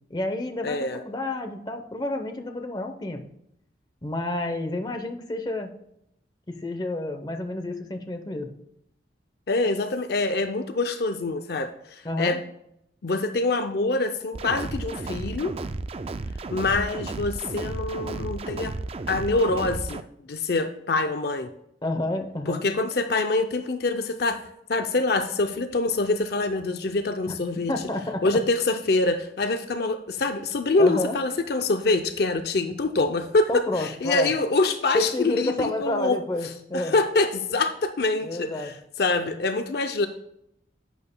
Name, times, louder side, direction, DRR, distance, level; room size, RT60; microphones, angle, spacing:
voice 1, 0.1-3.2 4.0-5.7 6.5-8.5 12.0-12.4 21.8-22.6 27.7-28.3 30.8-31.2 33.5-34.3 34.9-36.9 38.2-38.7, left 2 dB, 25° left, 5 dB, 0.7 m, -29 dB
voice 2, 0.6-1.0 9.5-12.4 13.0-15.6 16.5-18.7 19.1-20.0 20.3-21.5 22.5-24.4 24.7-27.7 28.2-36.2 36.7-40.1, left 3 dB, 60° left, 8 dB, 0.5 m, -25 dB
sound 1, 14.3-20.0, right 3 dB, 30° right, 0.3 m, -33 dB
11.0 x 8.8 x 2.2 m, 0.78 s
head